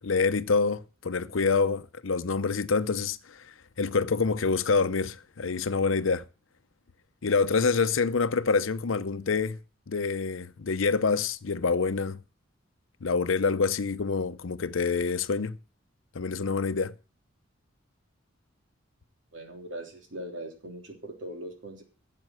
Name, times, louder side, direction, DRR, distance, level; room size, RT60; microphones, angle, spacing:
voice 1, 0.0-3.5 3.8-6.2 7.2-9.6 9.9-12.2 13.0-15.6 16.1-16.9, left 4 dB, 90° left, 0.7 m, -26 dB
voice 2, 19.3-21.8, right 1 dB, 70° right, 3.3 m, -40 dB
12.5 x 7.6 x 7.5 m
head